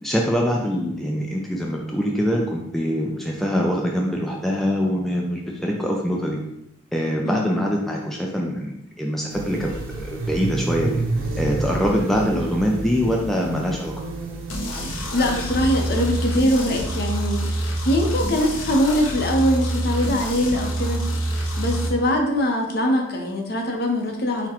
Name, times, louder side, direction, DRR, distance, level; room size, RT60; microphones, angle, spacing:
voice 1, 0.0-6.4 6.9-11.0 11.4-13.9, equal, ahead, -2 dB, 0.3 m, -24 dB
sound 1, 9.3-16.3, right 2 dB, 80° right, 0.8 m, -30 dB
sound 2, 14.5-21.9, right 1 dB, 85° left, 0.7 m, -26 dB
voice 2, 15.1-21.0 21.6-24.5, equal, 50° left, 2 dB, 0.7 m, -22 dB
5.8 x 2.2 x 2.9 m, 0.80 s
head